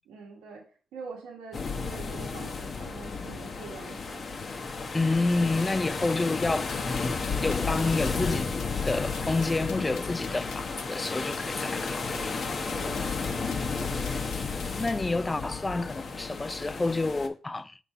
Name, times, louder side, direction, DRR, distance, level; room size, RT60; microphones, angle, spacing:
voice 1, 0.1-0.6 0.9-4.5 12.7-13.5, right 4 dB, 90° right, 1.7 m, -45 dB
sound 1, 1.5-17.3, left 4 dB, 50° left, 1.0 m, -32 dB
voice 2, 4.9-8.6 8.8-12.3 14.8-17.8, left 3 dB, 25° left, 0.4 m, -29 dB
sound 2, 6.4-15.0, left 8 dB, 80° left, 0.6 m, -48 dB
5.4 x 3.7 x 5.0 m
supercardioid pair, 55°, 0 cm